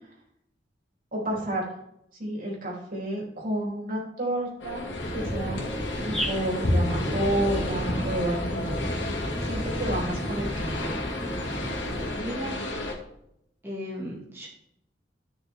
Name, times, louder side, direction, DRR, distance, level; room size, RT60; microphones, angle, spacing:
voice 1, 1.1-1.7 2.2-4.9 5.1-5.6 6.1-8.8 9.1-11.0, right 1 dB, 50° right, -3 dB, 3.6 m, -30 dB
sound 1, 4.6-12.9, left 1 dB, 85° left, 2.4 m, -31 dB
sound 2, 5.0-12.1, equal, 5° left, 3.0 m, -33 dB
voice 2, 12.1-12.7 13.6-14.5, equal, 15° right, -5 dB, 2.0 m, -35 dB
13.5 x 6.5 x 3.7 m, 0.77 s
head